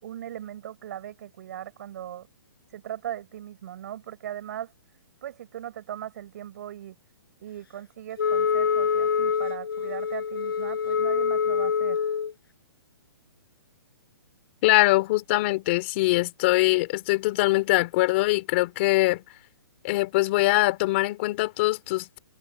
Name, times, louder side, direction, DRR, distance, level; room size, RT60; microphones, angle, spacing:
voice 1, 0.0-2.3 2.7-4.7 5.2-7.0 7.4-12.0, right 11 dB, 45° right, 6.8 m, -38 dB
Wind instrument woodwind instrument, 8.2-12.3, left 6 dB, 80° left, 6.4 m, -25 dB
voice 2, 14.6-19.2 19.8-22.2, left 20 dB, 30° left, 3.8 m, -23 dB
hypercardioid pair, 165°, 12 cm